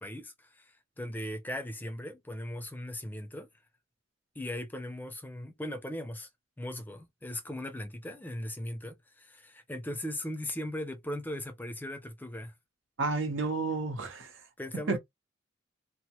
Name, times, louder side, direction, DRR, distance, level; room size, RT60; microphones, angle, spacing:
voice 1, 0.0-3.5 4.4-6.3 6.6-12.5 14.6-15.0, left 1 dB, 10° left, 0.4 m, -38 dB
voice 2, 13.0-14.3 14.7-15.0, right 3 dB, 90° right, 0.9 m, -31 dB
2.9 x 2.1 x 2.9 m
head